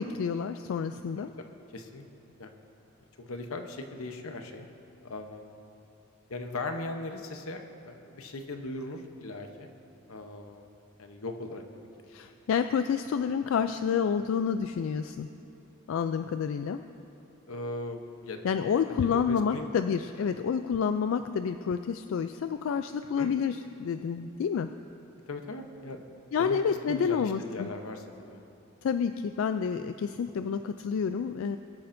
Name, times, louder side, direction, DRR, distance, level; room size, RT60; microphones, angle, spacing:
voice 1, 0.0-1.3 12.1-15.3 15.9-16.8 18.4-24.7 26.3-27.7 28.8-31.6, left 6 dB, 70° left, 9 dB, 0.3 m, -29 dB
voice 2, 1.2-2.1 2.4-2.5 3.2-4.7 5.0-5.5 6.3-9.7 10.1-10.6 11.0-11.9 17.5-18.4 18.9-19.7 23.2-23.3 25.3-26.1 26.4-28.4, left 2 dB, 90° left, 5 dB, 0.9 m, -39 dB
23.0 x 8.6 x 2.6 m, 2.7 s
head